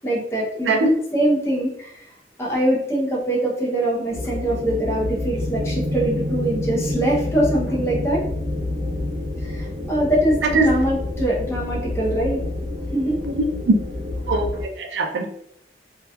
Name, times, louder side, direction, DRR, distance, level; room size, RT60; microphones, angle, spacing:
voice 1, 0.0-2.1 2.4-8.2 9.4-12.4 12.9-13.2, right 1 dB, 15° left, -5 dB, 0.6 m, -23 dB
sound 1, 4.1-14.6, left 1 dB, 55° right, 0.9 m, -28 dB
voice 2, 13.3-13.7 14.3-15.3, right 2 dB, 85° right, 4 dB, 0.4 m, -21 dB
2.8 x 2.2 x 2.2 m, 0.70 s
head